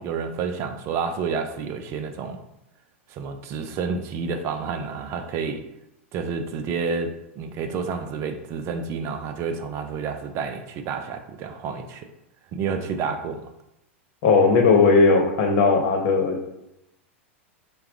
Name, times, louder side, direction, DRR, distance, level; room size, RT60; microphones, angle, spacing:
voice 1, 0.0-2.4 3.1-5.6 6.1-12.1 12.5-13.5, right 5 dB, 40° right, 7 dB, 0.5 m, -29 dB
voice 2, 14.2-16.5, left 4 dB, 55° left, 2 dB, 1.0 m, -17 dB
4.6 x 2.3 x 3.6 m, 0.85 s
hypercardioid pair, 100°, 7 cm